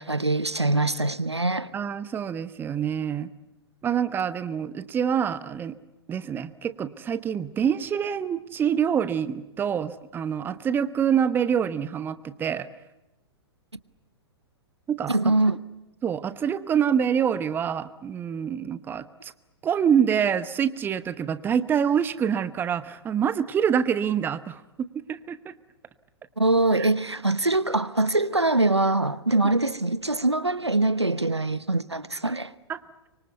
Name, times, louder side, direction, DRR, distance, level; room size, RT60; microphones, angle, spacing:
voice 1, 0.0-1.7 15.1-15.6 26.4-32.5, right 2 dB, 85° right, 1.0 m, -23 dB
voice 2, 1.7-3.3 3.8-5.8 6.1-12.7 14.9-15.3 16.0-19.3 19.6-25.5 26.8-26.9 32.7-32.8, right 8 dB, 15° right, 0.9 m, -26 dB
25.0 x 24.0 x 8.1 m
figure-of-eight pair, 110°, 14 cm